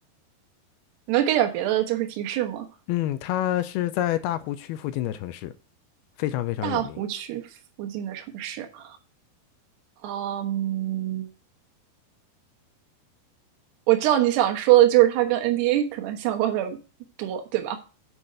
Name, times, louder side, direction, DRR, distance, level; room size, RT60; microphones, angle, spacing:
voice 1, 1.1-2.7 6.6-7.4 7.8-9.0 10.0-11.3 13.9-16.8 17.2-17.8, right 13 dB, 75° right, 3.3 m, -23 dB
voice 2, 2.9-5.5 6.2-7.0, left 13 dB, 80° left, 2.4 m, -28 dB
7.9 x 6.2 x 6.7 m
omnidirectional pair, 4.9 m